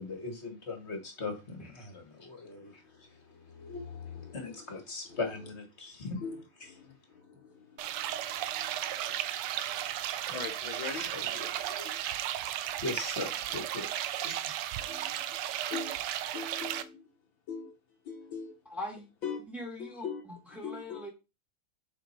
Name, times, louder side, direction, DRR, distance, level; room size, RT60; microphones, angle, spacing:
voice 1, 0.0-3.1 4.3-6.2 9.3-9.5 10.3-10.4 11.1-12.0 12.8-14.6, left 3 dB, 30° left, 2.1 m, -40 dB
voice 2, 2.8-4.7 5.1-5.5 6.2-11.3 14.9-15.2 15.7-16.0 16.3-17.1 17.5-17.7 18.1-18.5 19.2-19.4 19.8-20.2 20.6-21.1, left 5 dB, 70° left, 2.0 m, -42 dB
sound 1, 7.8-16.8, right 12 dB, 85° right, 1.6 m, -35 dB
voice 3, 18.7-19.1 19.5-21.1, left 1 dB, ahead, 2.3 m, -42 dB
7.4 x 5.0 x 4.6 m
omnidirectional pair, 2.3 m